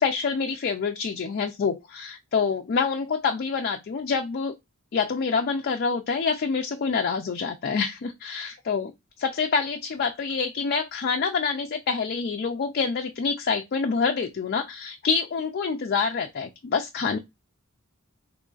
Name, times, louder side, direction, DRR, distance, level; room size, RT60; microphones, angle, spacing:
voice 1, 0.0-4.6 4.9-8.9 9.2-17.2, left 5 dB, 45° left, 0.4 m, -26 dB
3.1 x 2.4 x 3.8 m
head